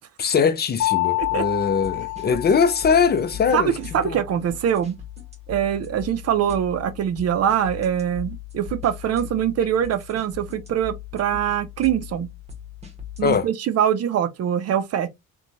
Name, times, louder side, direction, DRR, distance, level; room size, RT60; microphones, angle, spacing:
voice 1, 0.2-3.7 4.0-4.2 13.2-13.5, left 6 dB, 35° left, 0.5 m, -21 dB
Mallet percussion, 0.8-3.3, left 18 dB, 65° left, 0.8 m, -27 dB
sound 1, 1.2-13.4, left 10 dB, 20° right, 0.9 m, -39 dB
voice 2, 3.5-5.0 5.5-12.3 13.2-15.1, right 9 dB, 55° right, 0.5 m, -23 dB
2.9 x 2.2 x 2.5 m
cardioid pair, 90°, 30 cm